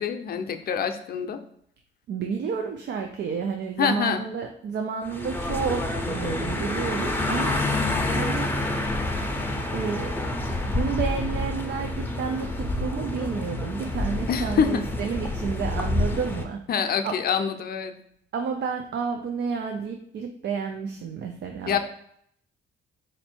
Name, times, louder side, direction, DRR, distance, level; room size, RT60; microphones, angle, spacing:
voice 1, 0.0-1.4 3.8-4.2 14.3-14.8 16.7-17.9 21.7-21.8, left 7 dB, 50° left, 7 dB, 0.5 m, -25 dB
voice 2, 2.1-7.6 8.1-8.6 9.7-10.2 10.7-16.6 17.0-17.2 18.3-21.8, right 6 dB, 65° right, 3 dB, 0.5 m, -30 dB
sound 1, 5.1-16.5, left 2 dB, 10° left, 0.6 m, -28 dB
4.2 x 2.6 x 4.3 m, 0.69 s
cardioid pair, 90°, 20 cm